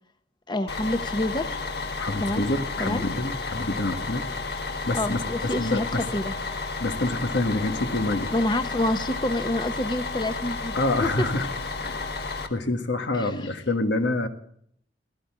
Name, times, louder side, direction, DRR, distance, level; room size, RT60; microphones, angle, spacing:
voice 1, 0.5-1.6 2.2-2.4 2.8-3.0 4.9-6.3 8.3-11.3 13.1-13.5, left 1 dB, 25° left, 9 dB, 0.8 m, -27 dB
Bus, 0.7-12.5, left 4 dB, 60° left, 1.6 m, -32 dB
voice 2, 2.0-4.2 4.9-6.1 6.8-8.3 10.7-11.5 11.8-12.1 12.5-14.3, left 2 dB, 90° left, 7 dB, 1.7 m, -27 dB
16.5 x 13.5 x 3.7 m, 0.65 s
head